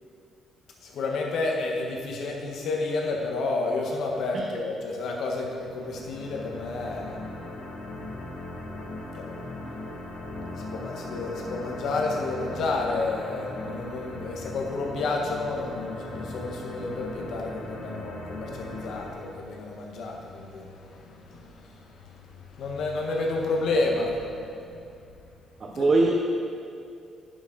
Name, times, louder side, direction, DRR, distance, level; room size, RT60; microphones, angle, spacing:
voice 1, 0.8-7.2 9.1-9.3 10.5-24.4 25.7-25.9, left 3 dB, 75° left, 0 dB, 1.4 m, -30 dB
sound 1, 5.4-19.1, left 2 dB, 90° left, 1.9 m, -39 dB
voice 2, 25.6-26.1, right 3 dB, 40° right, 1 dB, 0.8 m, -23 dB
10.5 x 6.3 x 4.0 m, 2.4 s
cardioid pair, 90°, 0 cm